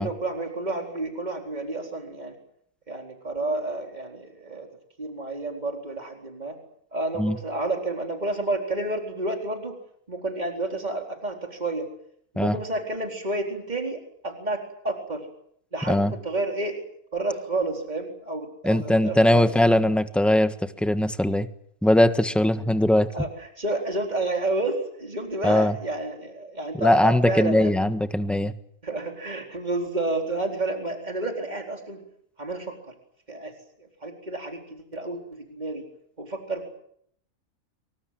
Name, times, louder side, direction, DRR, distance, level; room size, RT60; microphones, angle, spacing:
voice 1, 0.0-2.4 2.9-4.7 5.0-6.6 6.9-9.8 10.1-11.9 12.3-15.3 15.7-16.8 17.1-19.5 23.1-27.7 28.8-32.0 32.4-32.9 33.3-33.5 33.8-35.9 36.2-36.8, right 2 dB, 30° right, 2 dB, 4.4 m, -30 dB
voice 2, 18.6-21.5 21.8-23.1 25.4-25.8 26.8-28.5, left 1 dB, ahead, 9 dB, 1.3 m, -20 dB
26.0 x 24.0 x 7.7 m, 0.69 s
omnidirectional pair, 1.5 m